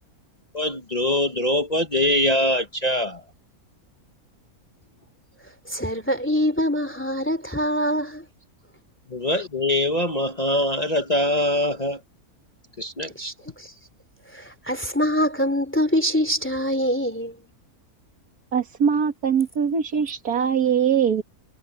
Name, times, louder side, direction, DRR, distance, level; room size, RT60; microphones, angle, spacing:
voice 1, 0.5-3.2 9.1-12.0 12.8-13.3, left 1 dB, 30° left, 1.1 m, -23 dB
voice 2, 5.7-8.3 13.1-13.7 14.3-17.4, equal, 10° left, 3.0 m, -24 dB
voice 3, 18.5-21.2, right 7 dB, 85° right, 2.4 m, -22 dB
omnidirectional pair, 1.6 m